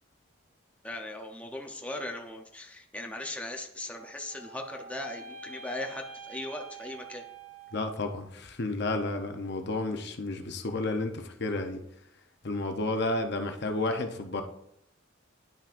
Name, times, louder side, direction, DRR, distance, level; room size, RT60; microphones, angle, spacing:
voice 1, 0.8-7.2, left 1 dB, 5° left, 2 dB, 0.6 m, -38 dB
sound 1, 3.8-8.1, right 4 dB, 85° right, 1.1 m, -47 dB
voice 2, 7.7-11.8 12.4-14.4, left 2 dB, 55° left, 6 dB, 0.7 m, -31 dB
10.5 x 5.8 x 2.5 m, 0.76 s
head